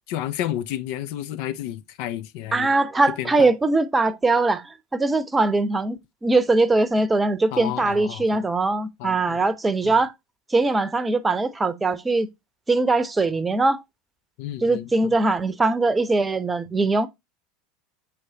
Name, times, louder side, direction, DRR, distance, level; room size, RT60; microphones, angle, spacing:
voice 1, 0.1-2.7 3.2-3.5 7.5-8.4 9.0-9.4 9.8-10.0 14.4-15.1, left 12 dB, 55° left, 0.8 m, -31 dB
voice 2, 2.5-10.1 10.5-12.3 12.7-13.8 14.6-17.1, right 3 dB, 15° right, 0.9 m, -21 dB
8.6 x 4.7 x 2.9 m
figure-of-eight pair, 75°, 0 cm